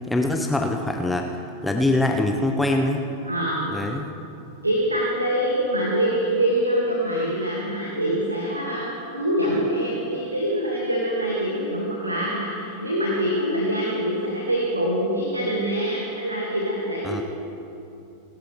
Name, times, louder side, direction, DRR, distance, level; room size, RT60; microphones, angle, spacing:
voice 1, 0.1-1.3 1.6-3.0 3.7-4.1 17.0-17.2, left 2 dB, 5° left, 3 dB, 1.0 m, -23 dB
voice 2, 3.2-3.7 4.6-17.2, right 1 dB, 80° right, -3 dB, 2.3 m, -24 dB
28.0 x 13.0 x 3.4 m, 2.7 s
figure-of-eight pair, 90°, 0 cm